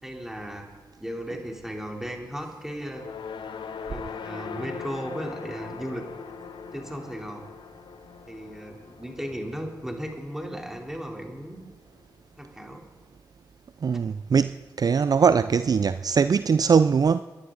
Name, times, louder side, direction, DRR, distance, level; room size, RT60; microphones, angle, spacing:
voice 1, 0.0-0.7 1.0-3.0 3.9-6.0 6.7-7.5 8.3-11.6 12.4-12.8, equal, 5° right, 1 dB, 3.4 m, -36 dB
sound 1, 2.8-11.2, left 6 dB, 70° left, 0.9 m, -41 dB
voice 2, 13.8-17.2, right 6 dB, 50° right, 13 dB, 0.4 m, -21 dB
26.5 x 11.0 x 3.9 m, 1.3 s
supercardioid pair, 40°, 8 cm